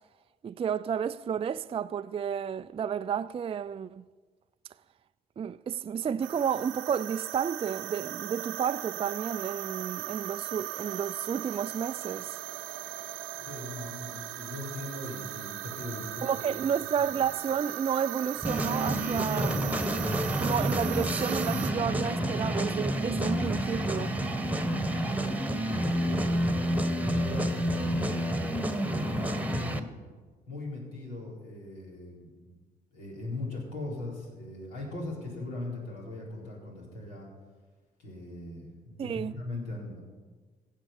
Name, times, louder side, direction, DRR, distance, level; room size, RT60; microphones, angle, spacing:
voice 1, 0.4-4.0 5.4-12.4 16.2-19.6 20.4-24.1 39.0-39.4, right 7 dB, 25° right, 0.4 m, -31 dB
sound 1, 6.2-21.7, right 14 dB, 75° right, 0.8 m, -38 dB
voice 2, 13.4-16.6 17.0-17.1 25.7-29.9 30.5-32.5 32.9-37.3 38.0-40.0, left 2 dB, 80° left, 4.2 m, -39 dB
sound 2, 18.4-29.8, right 1 dB, 5° right, 1.4 m, -29 dB
15.5 x 7.4 x 7.0 m
hypercardioid pair, 50°, 21 cm